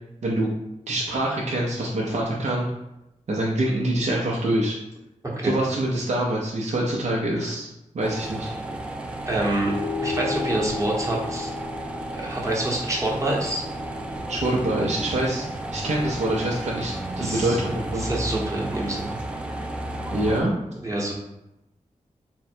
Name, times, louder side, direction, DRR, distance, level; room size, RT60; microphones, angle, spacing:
voice 1, 0.9-2.7 3.3-4.8 5.4-7.7 7.9-8.5 14.3-15.4 15.7-18.1 20.1-20.5, right 1 dB, 65° right, -3 dB, 0.7 m, -25 dB
voice 2, 5.2-5.6 9.3-9.7 10.0-11.5 12.1-13.7 17.2-17.6 18.0-19.2 20.8-21.1, right 1 dB, 25° right, -3 dB, 1.0 m, -26 dB
sound 1, 8.0-20.4, right 1 dB, 10° right, 0.4 m, -33 dB
sound 2, 9.6-14.4, left 4 dB, 40° left, 0.7 m, -34 dB
3.7 x 2.2 x 4.3 m, 0.89 s
wide cardioid pair, 85°, 13 cm